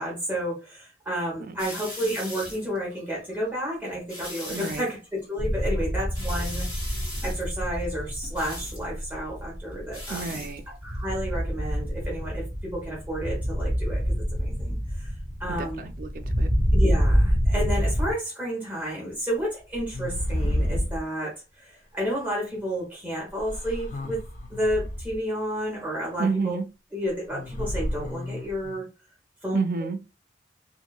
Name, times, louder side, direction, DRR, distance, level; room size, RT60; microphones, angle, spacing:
voice 1, 0.0-6.7 7.2-10.4 10.7-15.1 15.4-15.9 16.7-24.2 24.5-26.6 26.9-28.8 29.4-29.6, equal, 10° right, 0.8 m, -31 dB
sound 1, 1.6-3.4 3.9-4.9 5.2-5.6 5.9-8.8 9.7-10.6 10.9-11.1, left 1 dB, 20° left, 1.0 m, -39 dB
voice 2, 4.5-4.9 10.1-10.6 15.5-16.5 26.2-26.7 29.5-30.0, right 4 dB, 50° right, 0.3 m, -30 dB
sound 2, 5.4-18.1, equal, 60° left, 1.2 m, -27 dB
sound 3, 18.8-19.0 19.7-21.0 22.2-22.3 23.4-25.2 27.3-28.8, equal, 45° left, 0.5 m, -31 dB
2.7 x 2.2 x 2.2 m
head